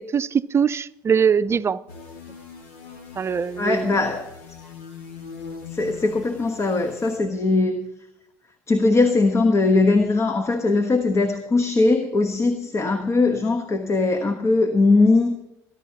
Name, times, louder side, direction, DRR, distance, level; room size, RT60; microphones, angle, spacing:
voice 1, 0.0-1.8 3.2-3.9, right 7 dB, 30° right, 0.6 m, -22 dB
sound 1, 1.9-7.2, left 5 dB, 80° left, 2.1 m, -41 dB
voice 2, 3.6-4.6 5.7-7.9 8.7-15.4, left 3 dB, 35° left, 1.2 m, -20 dB
25.5 x 11.5 x 2.9 m
hypercardioid pair, 70°, 8 cm